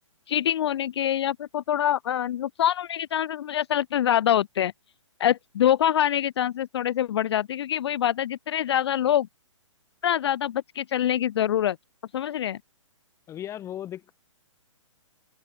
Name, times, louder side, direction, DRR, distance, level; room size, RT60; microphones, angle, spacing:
voice 1, 0.3-4.7 5.2-9.3 10.0-11.8 12.1-12.6, left 11 dB, 55° left, 0.4 m, -25 dB
voice 2, 13.3-14.1, left 11 dB, 15° left, 1.2 m, -36 dB
open air
figure-of-eight pair, 125°, 17 cm